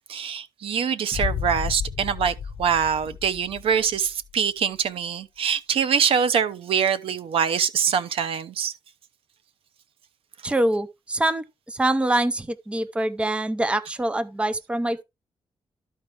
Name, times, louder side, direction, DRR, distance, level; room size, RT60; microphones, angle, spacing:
voice 1, 0.1-8.7, right 7 dB, 85° right, 0.8 m, -24 dB
Boom, 1.1-4.1, left 7 dB, 65° left, 0.8 m, -32 dB
voice 2, 10.4-15.0, right 1 dB, 10° right, 0.6 m, -25 dB
13.0 x 4.6 x 3.2 m
wide cardioid pair, 140°, 9 cm